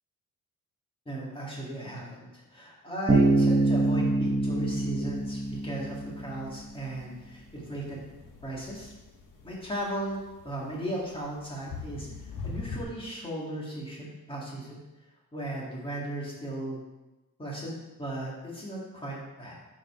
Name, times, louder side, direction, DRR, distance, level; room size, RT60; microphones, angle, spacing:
voice 1, 1.1-8.0 8.4-8.9 9.4-10.2 10.4-14.8 15.3-16.8 17.4-19.5, right 1 dB, 15° left, -4 dB, 1.9 m, -36 dB
Bass guitar, 3.1-6.7, right 2 dB, 20° right, 0.8 m, -25 dB
sound 1, 5.1-12.8, left 4 dB, 85° left, 1.3 m, -44 dB
9.2 x 5.2 x 3.7 m, 1.1 s
wide cardioid pair, 170°, 31 cm